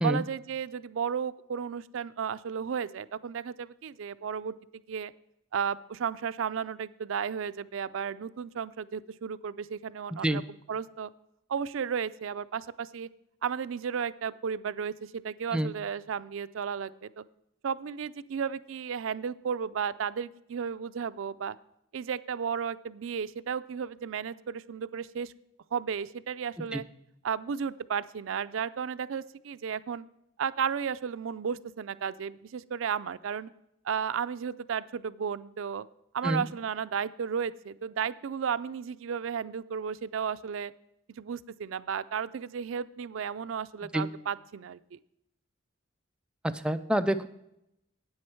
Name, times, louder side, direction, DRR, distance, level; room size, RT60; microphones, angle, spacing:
voice 1, 0.0-5.1 5.5-10.4 10.7-11.1 11.5-13.1 13.4-17.2 17.6-21.6 21.9-25.3 25.7-26.8 27.2-30.1 30.4-33.5 33.8-35.9 36.1-40.7 41.2-45.0, right 7 dB, 80° right, 15 dB, 0.4 m, -33 dB
voice 2, 46.4-47.3, right 1 dB, 5° right, 9 dB, 0.4 m, -27 dB
9.6 x 8.7 x 4.5 m, 0.82 s
head